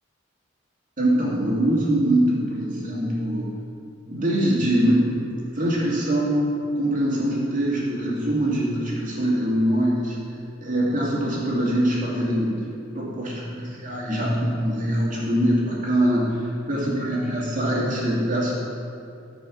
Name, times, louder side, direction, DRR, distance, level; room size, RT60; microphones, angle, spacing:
voice 1, 1.0-3.5 4.1-5.2 5.5-6.5 6.8-10.2 10.6-12.7 12.9-18.5, right 1 dB, 40° right, -5 dB, 2.5 m, -23 dB
13.5 x 5.2 x 6.4 m, 2.6 s
head